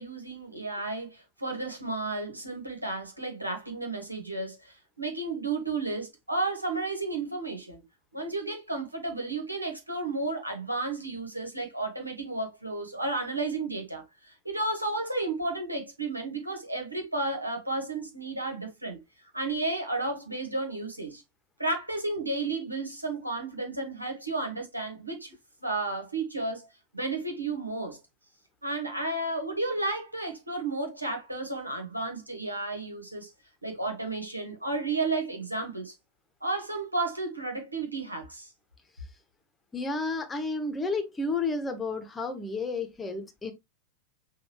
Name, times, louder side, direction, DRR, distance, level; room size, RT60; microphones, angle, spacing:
voice 1, 0.0-7.8 8.1-19.0 19.3-21.2 21.6-25.3 25.6-26.7 26.9-28.0 28.6-33.3 33.6-35.9 36.4-38.5, right 2 dB, 85° right, 1.5 m, -32 dB
voice 2, 39.7-43.5, left 3 dB, 15° left, 1.0 m, -31 dB
6.3 x 2.6 x 3.1 m
figure-of-eight pair, 90°, 0 cm